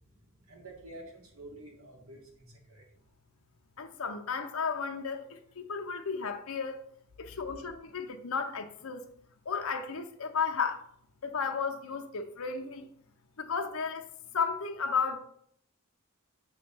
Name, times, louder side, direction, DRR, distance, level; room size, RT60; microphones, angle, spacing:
voice 1, 0.4-2.8 7.4-7.5, right 1 dB, 80° right, 1.7 m, -49 dB
voice 2, 3.8-6.8 7.2-9.0 9.5-10.8 11.2-12.9 13.4-14.0 14.3-15.2, left 5 dB, 75° left, 0.7 m, -33 dB
5.9 x 3.2 x 5.5 m
head